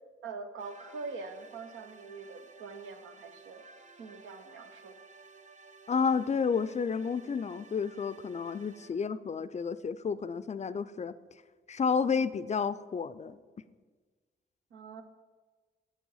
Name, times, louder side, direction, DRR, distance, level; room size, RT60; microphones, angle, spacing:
voice 1, 0.2-3.6 4.0-5.0 14.7-15.0, right 4 dB, 90° right, 7 dB, 0.8 m, -43 dB
sound 1, 0.6-8.9, right 4 dB, 40° right, 0.7 m, -55 dB
voice 2, 5.9-11.1 11.7-13.4, left 6 dB, 35° left, 15 dB, 0.4 m, -31 dB
7.3 x 6.0 x 5.6 m, 1.4 s
cardioid pair, 60°, 20 cm